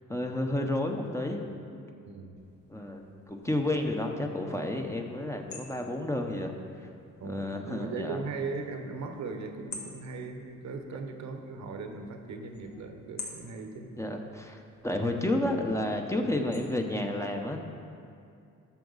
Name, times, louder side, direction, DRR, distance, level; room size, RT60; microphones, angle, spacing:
voice 1, 0.1-1.5 2.7-6.5 7.2-8.2 14.0-17.6, left 1 dB, 10° left, 3 dB, 0.8 m, -31 dB
sound 1, 2.4-17.0, left 4 dB, 75° left, 1.6 m, -51 dB
voice 2, 7.2-13.9 14.9-15.2, right 4 dB, 65° right, 5 dB, 1.0 m, -38 dB
13.0 x 5.9 x 4.0 m, 2.5 s
cardioid pair, 90°, 30 cm